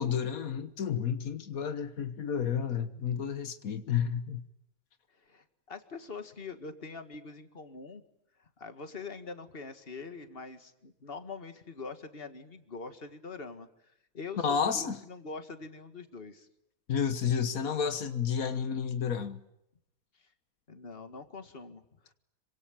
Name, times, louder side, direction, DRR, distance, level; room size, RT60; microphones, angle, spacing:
voice 1, 0.0-4.4 14.4-15.0 16.9-19.4, left 7 dB, 85° left, 1.7 m, -31 dB
voice 2, 5.1-8.0 8.4-16.5 20.2-20.3 20.7-22.1, left 4 dB, 45° left, 2.1 m, -44 dB
26.5 x 25.0 x 9.1 m
omnidirectional pair, 1.4 m